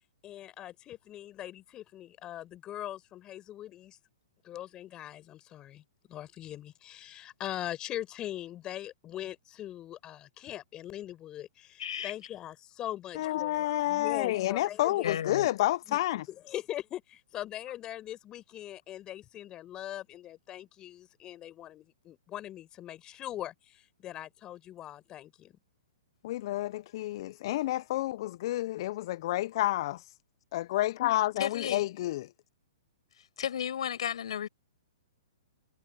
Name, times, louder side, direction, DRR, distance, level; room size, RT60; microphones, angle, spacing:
voice 1, 0.2-4.0 4.4-15.2 15.9-16.0 16.3-25.6, left 12 dB, 25° left, 6.2 m, -41 dB
voice 2, 11.8-12.1 15.0-15.5 31.4-31.9 33.4-34.5, left 9 dB, 70° left, 7.4 m, -33 dB
voice 3, 13.2-16.2 26.2-30.1 30.5-32.3, left 15 dB, 50° left, 0.5 m, -30 dB
hypercardioid pair, 130°, 3 cm